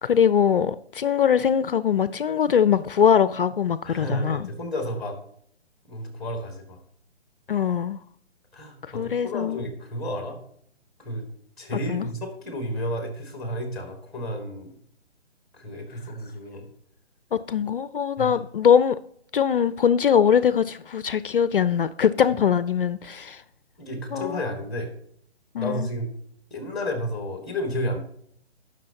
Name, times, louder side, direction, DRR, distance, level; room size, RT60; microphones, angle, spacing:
voice 1, 0.0-4.5 7.5-8.0 8.9-9.6 11.7-12.1 17.3-19.0 19.3-23.4 24.1-24.4 25.5-25.9, left 8 dB, 55° left, 0.5 m, -22 dB
voice 2, 3.8-5.2 5.9-6.8 8.5-10.4 11.0-11.2 11.6-14.7 15.5-16.6 18.2-18.4 23.8-24.9 25.6-26.1 26.5-28.0, equal, ahead, 2.1 m, -31 dB
18.0 x 6.4 x 2.9 m
figure-of-eight pair, 150°, 33 cm